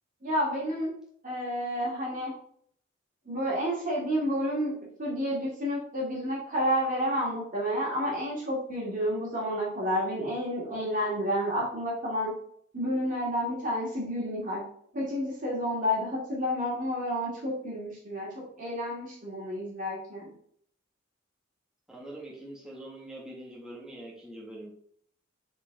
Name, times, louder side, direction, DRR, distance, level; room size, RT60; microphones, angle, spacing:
voice 1, 0.2-0.9 1.2-2.3 3.3-4.7 5.0-12.3 12.7-14.6 14.9-20.3, equal, 40° right, -4 dB, 2.2 m, -30 dB
voice 2, 21.9-24.7, right 1 dB, 5° right, -5 dB, 1.6 m, -43 dB
7.2 x 4.5 x 3.4 m, 0.64 s
head